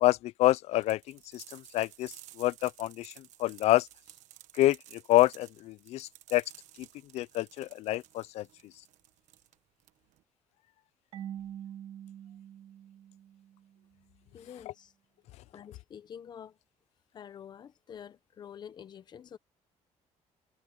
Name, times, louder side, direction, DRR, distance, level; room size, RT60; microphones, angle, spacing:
voice 1, 0.0-3.9 4.6-6.4 7.1-8.5, left 16 dB, 60° left, 0.4 m, -27 dB
sound 1, 0.8-10.2, right 14 dB, 75° right, 1.2 m, -54 dB
Marimba xylophone / Wood, 11.1-13.9, right 10 dB, 55° right, 1.7 m, -45 dB
voice 2, 14.3-14.9 15.5-16.6 17.1-19.4, left 8 dB, 35° left, 0.8 m, -47 dB
cardioid pair, 170°, 12 cm